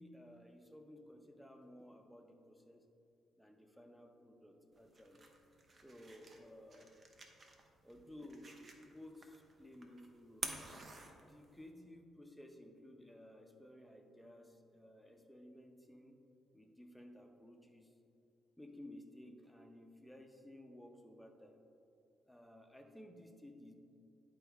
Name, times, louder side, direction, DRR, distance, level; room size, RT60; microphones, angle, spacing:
voice 1, 0.0-2.9 3.4-5.2 5.7-6.9 7.8-10.5 11.2-16.2 16.5-17.9 18.6-21.6 22.3-23.7, left 1 dB, ahead, 3 dB, 0.8 m, -56 dB
sound 1, 4.7-11.7, right 3 dB, 40° right, 0.8 m, -51 dB
10.5 x 4.6 x 3.5 m, 2.6 s
cardioid pair, 90°, 0 cm